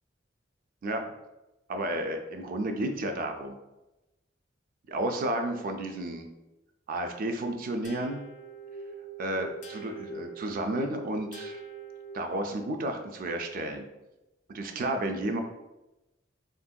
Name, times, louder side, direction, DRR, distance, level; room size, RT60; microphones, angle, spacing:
voice 1, 1.7-3.6 4.9-6.3 6.9-8.2 9.2-11.6 12.1-13.8 14.5-15.4, right 1 dB, 50° right, 6 dB, 0.3 m, -32 dB
sound 1, 7.8-12.6, right 4 dB, 40° left, 0.4 m, -43 dB
3.5 x 2.5 x 2.2 m, 1.0 s
head